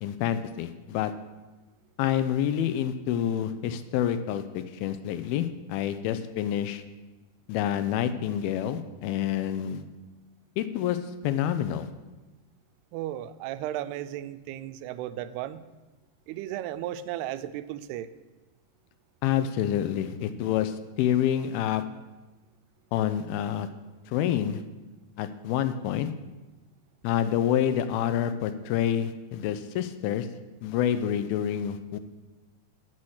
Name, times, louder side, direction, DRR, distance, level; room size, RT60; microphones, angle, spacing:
voice 1, 0.0-1.1 2.0-6.8 7.5-9.8 10.6-11.0 11.2-11.9 19.2-21.8 22.9-23.7 24.1-24.6 25.2-26.1 27.0-30.3 30.6-32.0, left 10 dB, 85° left, 11 dB, 2.4 m, -27 dB
voice 2, 12.9-15.6 16.3-18.1, right 12 dB, 90° right, 13 dB, 2.6 m, -35 dB
8.6 x 8.4 x 6.4 m, 1.1 s
omnidirectional pair, 4.5 m